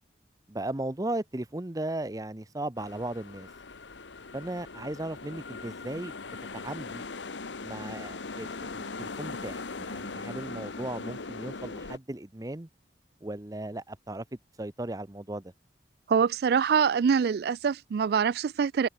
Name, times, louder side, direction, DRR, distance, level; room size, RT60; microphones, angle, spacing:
voice 1, 0.5-3.5 4.3-7.0 7.6-12.7 13.2-14.2 14.6-15.5, right 1 dB, 20° right, 0.8 m, -36 dB
sound 1, 2.8-12.0, left 3 dB, 85° left, 1.2 m, -40 dB
voice 2, 16.1-18.9, right 6 dB, 60° right, 0.3 m, -24 dB
head